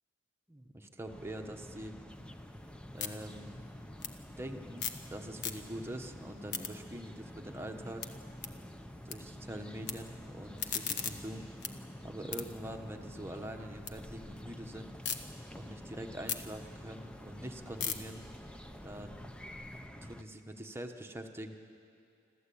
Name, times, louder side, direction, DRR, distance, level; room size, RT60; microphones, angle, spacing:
voice 1, 0.5-2.0 2.9-3.6 4.4-8.1 9.0-11.5 12.0-14.9 15.6-18.2 18.8-19.3 20.0-21.6, right 1 dB, 10° right, 4 dB, 1.2 m, -44 dB
sound 1, 1.0-20.2, left 1 dB, 5° left, 0.7 m, -48 dB
sound 2, 2.1-5.1 5.3-6.0 6.3-9.2 9.4-9.9 10.3-13.9 14.3-15.2 15.6-19.8, left 7 dB, 60° left, 1.2 m, -42 dB
26.5 x 14.0 x 8.6 m, 2.5 s
head